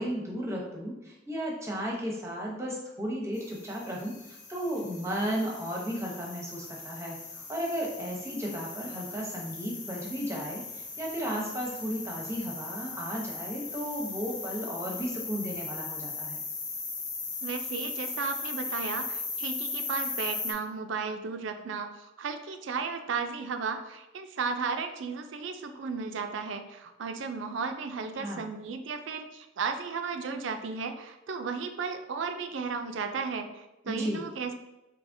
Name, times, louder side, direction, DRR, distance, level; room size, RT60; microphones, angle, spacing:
voice 1, 0.0-16.4 28.2-28.4 33.9-34.2, equal, 15° right, -2 dB, 0.8 m, -34 dB
sound 1, 3.3-20.5, left 4 dB, 40° left, 0.6 m, -38 dB
voice 2, 17.4-34.5, right 5 dB, 70° right, 7 dB, 0.4 m, -34 dB
4.8 x 2.8 x 2.6 m, 0.95 s
head